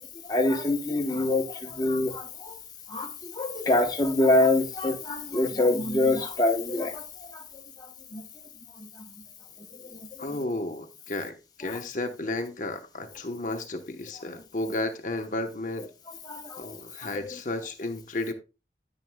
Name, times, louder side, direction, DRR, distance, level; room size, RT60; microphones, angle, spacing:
voice 1, 0.2-2.5 2.9-7.4 7.8-8.5 8.8-9.0 9.7-10.1 11.6-11.8 16.2-16.6 17.1-17.4, left 2 dB, 20° left, 0.9 m, -26 dB
voice 2, 10.2-15.9 16.6-18.3, left 2 dB, 45° left, 0.9 m, -33 dB
9.8 x 9.5 x 2.2 m
head